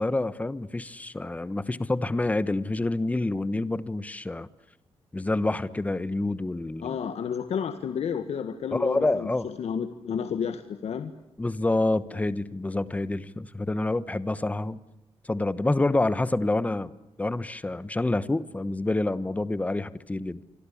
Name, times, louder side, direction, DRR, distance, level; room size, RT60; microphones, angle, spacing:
voice 1, 0.0-4.5 5.1-7.0 8.7-9.5 11.4-14.8 15.2-16.9 17.2-20.4, left 2 dB, 15° left, 15 dB, 1.1 m, -27 dB
voice 2, 6.8-11.1, left 7 dB, 90° left, 9 dB, 1.6 m, -31 dB
27.0 x 26.0 x 8.5 m, 0.88 s
wide cardioid pair, 150°, 11 cm